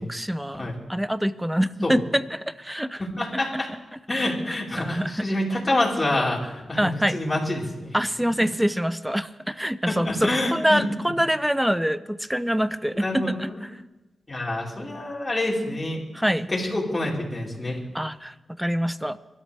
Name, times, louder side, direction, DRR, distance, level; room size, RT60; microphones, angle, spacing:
voice 1, 0.0-3.0 3.9-5.3 6.8-7.2 7.9-13.8 16.1-16.5 17.9-19.2, equal, 5° right, 14 dB, 0.8 m, -25 dB
voice 2, 3.0-3.7 4.1-8.0 10.0-10.8 13.0-13.6 14.3-16.0 16.5-17.8, left 1 dB, 30° left, -3 dB, 4.7 m, -27 dB
26.0 x 13.0 x 3.5 m, 1.0 s
cardioid pair, 60°, 0 cm